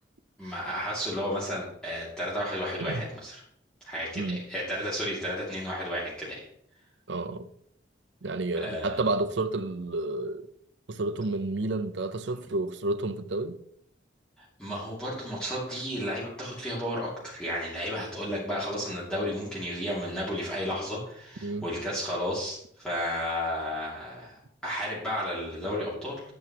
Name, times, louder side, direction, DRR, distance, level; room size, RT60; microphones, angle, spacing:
voice 1, 0.4-3.4 3.8-6.4 8.6-9.0 14.4-26.2, equal, 5° left, 2.6 m, -33 dB
voice 2, 7.1-7.5 8.2-10.5 10.9-13.6 21.4-21.7, right 2 dB, 80° right, 0.7 m, -30 dB
12.5 x 8.0 x 3.0 m
head